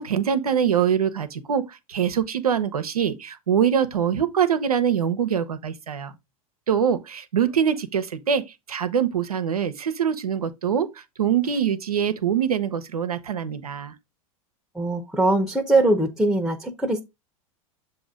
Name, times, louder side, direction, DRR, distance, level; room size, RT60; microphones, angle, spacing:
voice 1, 0.0-6.1 6.7-10.9 11.2-13.9, right 8 dB, 90° right, 0.8 m, -24 dB
voice 2, 14.7-17.0, right 2 dB, 5° right, 1.0 m, -21 dB
7.1 x 2.7 x 5.0 m
hypercardioid pair, 95°, 19 cm